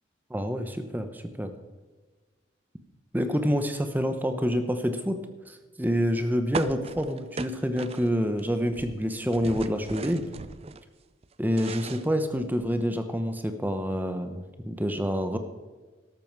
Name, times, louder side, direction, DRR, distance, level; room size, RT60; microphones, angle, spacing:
voice 1, 0.3-1.5 3.1-5.2 5.5-10.2 11.4-15.4, equal, 10° right, 8 dB, 0.8 m, -27 dB
sound 1, 6.5-8.4 8.7-10.8 11.2-12.8, right 4 dB, 30° right, 0.4 m, -37 dB
13.0 x 12.5 x 4.7 m, 1.3 s
head